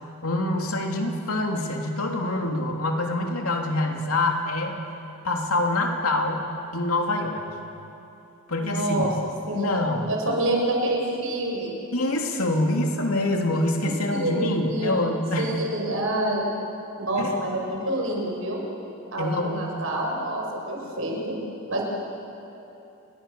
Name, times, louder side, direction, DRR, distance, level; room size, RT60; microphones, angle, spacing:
voice 1, 0.2-4.8 5.2-6.4 6.7-7.4 8.5-9.1 9.5-10.1 11.9-15.6 17.2-17.3 19.2-19.7, left 2 dB, 90° left, 2 dB, 3.1 m, -25 dB
voice 2, 8.6-9.1 9.5-9.7 10.1-11.7 14.1-14.9 15.4-16.5 17.0-18.6 19.1-21.4 21.7-21.8, right 1 dB, 70° right, 0 dB, 5.8 m, -27 dB
29.5 x 21.5 x 7.2 m, 2.9 s
head